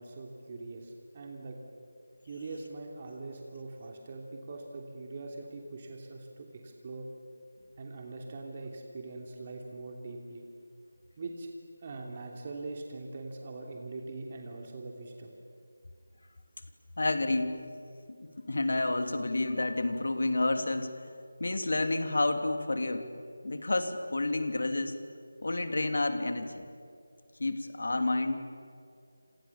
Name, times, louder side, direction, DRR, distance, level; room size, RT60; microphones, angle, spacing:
voice 1, 0.0-1.6 2.3-7.1 7.8-10.5 11.2-11.5 11.8-15.3, right 3 dB, 35° right, 1 dB, 2.9 m, -42 dB
voice 2, 17.0-17.6 18.2-20.9 21.4-23.1 23.4-25.0 25.4-26.7 27.4-28.6, left 2 dB, 65° left, 7 dB, 3.0 m, -30 dB
29.5 x 27.0 x 7.3 m, 2.4 s
figure-of-eight pair, 160°, 0 cm